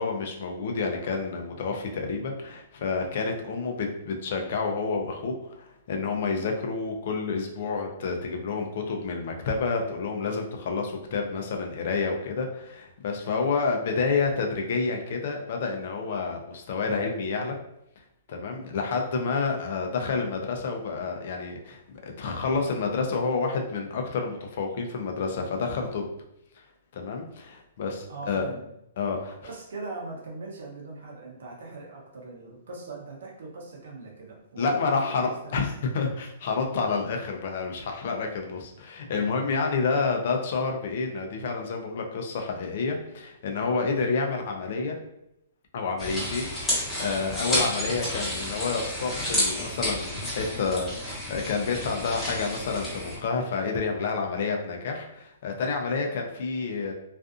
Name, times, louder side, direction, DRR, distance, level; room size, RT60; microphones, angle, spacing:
voice 1, 0.0-17.6 18.3-26.1 26.9-28.5 29.0-29.4 34.6-45.0 45.7-56.9, left 4 dB, 55° left, 3 dB, 0.5 m, -29 dB
voice 2, 28.1-28.6 29.4-35.7 46.0-46.3, right 3 dB, 80° right, -1 dB, 0.8 m, -40 dB
sound 1, 46.0-53.2, left 1 dB, 5° left, 1.0 m, -31 dB
2.5 x 2.4 x 2.4 m, 0.82 s
hypercardioid pair, 150°, 0 cm